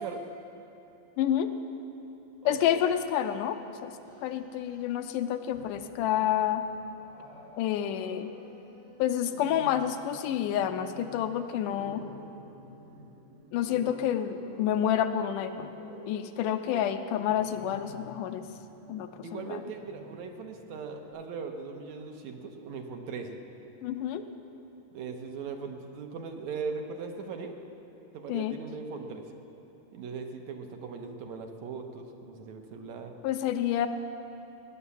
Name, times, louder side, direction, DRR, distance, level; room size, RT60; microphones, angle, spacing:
voice 1, 1.2-1.5 2.5-3.9 4.2-6.7 7.6-8.3 9.0-12.0 13.5-15.7 16.1-18.5 18.9-19.6 23.8-24.3 28.3-28.6 33.2-33.9, left 10 dB, 80° left, 9 dB, 2.1 m, -29 dB
voice 2, 2.4-2.8 19.2-23.4 24.9-27.6 28.1-29.3 29.9-33.2, right 5 dB, 65° right, 4 dB, 2.1 m, -39 dB
Growling, 3.9-4.9 5.4-6.1 6.5-21.1, equal, 85° right, 6.4 m, -51 dB
19.5 x 10.0 x 7.1 m, 2.9 s
omnidirectional pair, 3.9 m